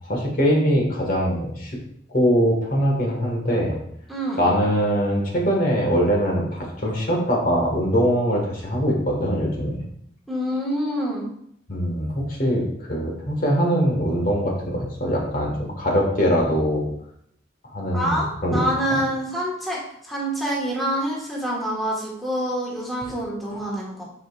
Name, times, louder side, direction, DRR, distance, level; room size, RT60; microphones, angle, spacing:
voice 1, 0.1-1.7 2.1-3.8 4.4-9.8 11.7-16.9 17.7-18.6, equal, 45° left, -1 dB, 1.7 m, -22 dB
voice 2, 4.1-4.4 10.3-11.3 17.9-24.0, equal, ahead, -5 dB, 1.6 m, -26 dB
10.0 x 5.0 x 2.5 m, 0.72 s
head